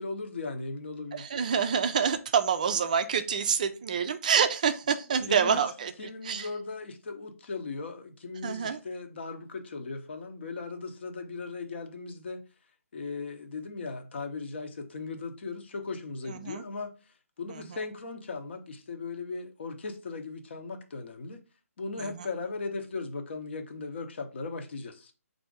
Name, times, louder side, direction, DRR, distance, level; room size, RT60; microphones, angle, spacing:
voice 1, 0.0-1.3 5.2-12.4 12.9-16.9 17.4-21.4 21.8-25.1, left 4 dB, 45° left, 0.8 m, -38 dB
voice 2, 1.2-5.9 6.2-6.5 8.4-8.8 16.3-16.6, right 7 dB, 30° right, 0.4 m, -27 dB
4.2 x 2.6 x 4.8 m
hypercardioid pair, 160°, 8 cm